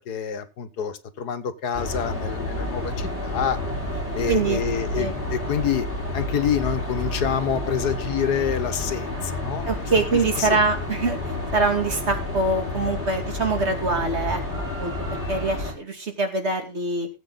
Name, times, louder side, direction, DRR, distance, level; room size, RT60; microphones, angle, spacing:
voice 1, 0.0-3.6 4.1-5.9 6.1-9.7 10.1-10.6, left 8 dB, 85° left, 1.7 m, -27 dB
sound 1, 1.7-15.7, left 1 dB, 35° left, 4.9 m, -30 dB
voice 2, 4.3-4.6 4.9-5.2 9.7-14.4 14.8-17.1, right 3 dB, 45° right, 2.6 m, -24 dB
18.5 x 7.9 x 3.9 m
omnidirectional pair, 1.6 m